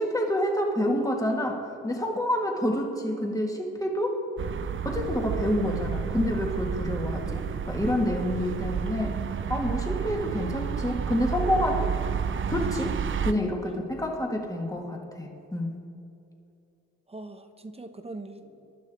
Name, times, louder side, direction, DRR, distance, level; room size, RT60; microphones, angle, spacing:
voice 1, 0.0-4.2 4.8-9.2 9.5-11.9 12.5-15.8, left 1 dB, 10° left, 1 dB, 2.0 m, -28 dB
sound 1, 4.4-13.3, right 7 dB, 40° right, 0.7 m, -31 dB
voice 2, 12.8-13.2 13.6-14.1 17.1-18.7, right 2 dB, 20° right, 7 dB, 1.0 m, -43 dB
23.0 x 11.5 x 3.7 m, 2.7 s
cardioid pair, 90°, 30 cm